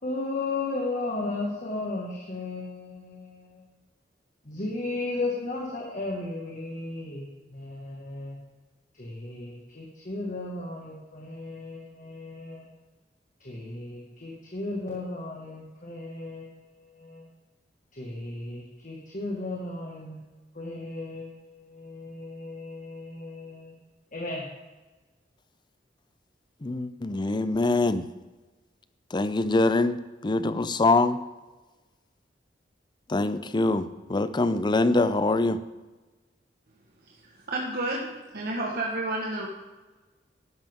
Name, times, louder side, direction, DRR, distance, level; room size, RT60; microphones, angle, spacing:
voice 1, 0.0-3.6 4.4-8.4 8.9-12.7 13.4-17.3 17.9-20.2 20.5-23.7 24.1-24.5, left 2 dB, 50° left, -2 dB, 1.8 m, -35 dB
voice 2, 26.6-28.1 29.1-31.2 33.1-35.6, left 2 dB, 25° left, 12 dB, 0.5 m, -24 dB
voice 3, 37.2-38.1 38.3-39.5, right 2 dB, 60° right, -2 dB, 1.4 m, -30 dB
12.0 x 11.0 x 3.6 m, 1.2 s
head